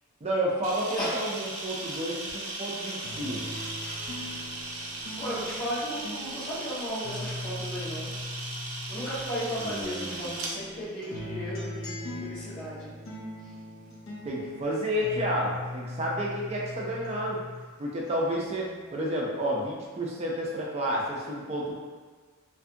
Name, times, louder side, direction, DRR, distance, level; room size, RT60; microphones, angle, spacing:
voice 1, 0.2-3.4 9.6-10.3 14.2-17.4 17.8-21.7, equal, 30° right, -4 dB, 0.4 m, -30 dB
Camera, 0.6-10.5, right 2 dB, 85° right, 0.5 m, -37 dB
sound 1, 3.0-9.7 10.1-17.7 18.1-19.0, left 1 dB, 70° left, 0.6 m, -40 dB
voice 2, 5.2-8.1 8.9-12.9 13.4-13.5, equal, 45° left, -11 dB, 1.1 m, -35 dB
2.5 x 2.3 x 2.6 m, 1.4 s
head